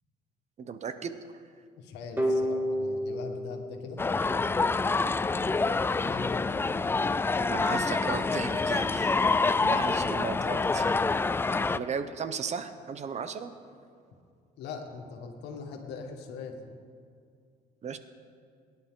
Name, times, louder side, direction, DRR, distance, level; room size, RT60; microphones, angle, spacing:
voice 1, 0.6-1.2 7.4-9.2 9.6-10.9 11.7-13.5 17.8-18.0, right 6 dB, 40° right, 10 dB, 0.9 m, -35 dB
voice 2, 1.8-4.0 5.9-6.7 9.5-9.8 11.7-11.9 14.6-16.7, left 5 dB, 85° left, 3 dB, 1.8 m, -41 dB
sound 1, 2.2-5.0, equal, 10° right, 2.1 m, -31 dB
sound 2, 4.0-11.8, left 3 dB, 15° left, 0.3 m, -27 dB
22.5 x 11.0 x 3.8 m, 2.3 s
cardioid pair, 110°, 17 cm